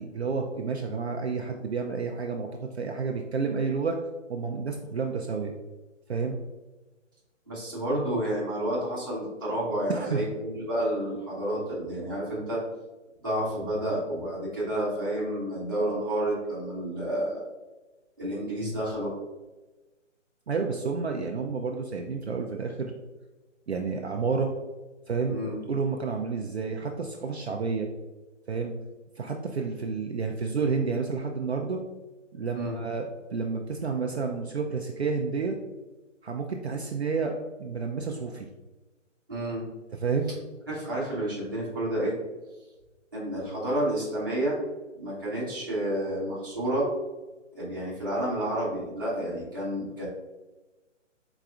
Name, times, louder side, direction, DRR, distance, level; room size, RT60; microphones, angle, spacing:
voice 1, 0.0-4.0 4.3-5.5 6.1-6.4 9.9-10.2 20.5-22.9 23.7-24.5 25.1-27.9 28.5-28.7 29.2-31.8 32.3-35.6 36.2-37.3 37.6-38.5 40.0-40.3, right 5 dB, 60° right, 2 dB, 0.4 m, -30 dB
voice 2, 7.5-12.6 13.2-17.4 18.2-19.1 25.3-25.6 32.5-32.8 39.3-39.7 40.7-42.2 43.1-44.6 44.9-46.9 47.5-50.1, right 1 dB, 15° right, -11 dB, 0.8 m, -30 dB
4.6 x 3.9 x 2.4 m, 1.2 s
hypercardioid pair, 180°, 38 cm